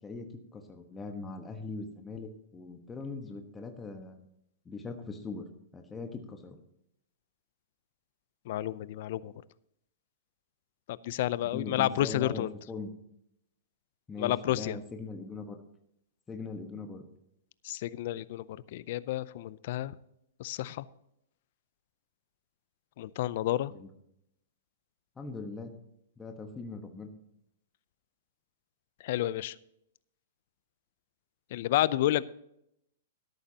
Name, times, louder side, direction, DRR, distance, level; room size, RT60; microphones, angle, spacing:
voice 1, 0.0-4.3 4.6-5.4 5.7-6.6 11.4-12.9 14.1-15.6 16.3-17.0 23.7-23.9 25.2-25.7 26.2-27.1, left 4 dB, 15° left, 4 dB, 1.2 m, -41 dB
voice 2, 8.5-9.3 10.9-12.5 14.2-14.8 17.6-20.0 20.4-20.8 23.0-23.7 29.0-29.6 31.5-32.2, left 14 dB, 55° left, 19 dB, 0.5 m, -30 dB
13.0 x 11.5 x 2.9 m, 0.78 s
hypercardioid pair, 145°, 0 cm